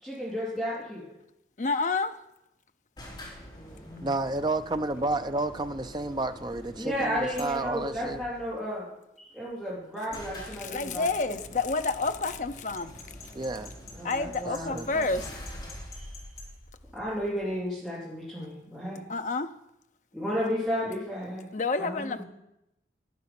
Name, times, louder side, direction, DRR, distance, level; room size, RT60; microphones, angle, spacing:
voice 1, 0.0-1.1 3.5-4.0 6.8-8.9 9.2-11.0 13.9-14.8 16.9-19.0 20.1-21.5 21.8-22.2, equal, ahead, -9 dB, 3.3 m, -33 dB
voice 2, 1.6-2.2 10.6-12.9 13.2-13.3 14.0-15.4 19.1-19.5 21.5-22.2, left 3 dB, 40° left, 9 dB, 0.6 m, -29 dB
sound 1, 3.0-8.5 9.5-9.6 9.7-9.8 10.1-17.6, equal, 25° left, 3.4 m, -46 dB
voice 3, 4.0-8.2 13.3-13.7 14.7-15.1, right 2 dB, 25° right, 9 dB, 0.5 m, -31 dB
sound 2, 7.4-7.6 10.1-10.3 12.8-16.5, left 4 dB, 70° left, 2.7 m, -47 dB
12.0 x 9.5 x 6.0 m, 0.87 s
head